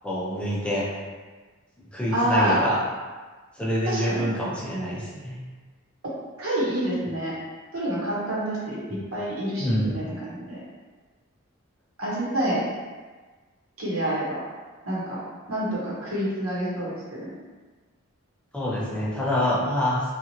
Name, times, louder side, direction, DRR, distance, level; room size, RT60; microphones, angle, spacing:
voice 1, 0.0-0.9 1.9-2.8 3.6-5.4 9.6-10.0 18.5-20.0, equal, 5° left, -6 dB, 0.4 m, -26 dB
voice 2, 2.1-2.6 3.8-4.3 6.4-7.3 7.7-10.6 12.0-12.6 13.8-14.4 14.8-15.2 15.5-17.3, right 1 dB, 90° right, -7 dB, 1.0 m, -27 dB
2.7 x 2.4 x 2.9 m, 1.4 s
head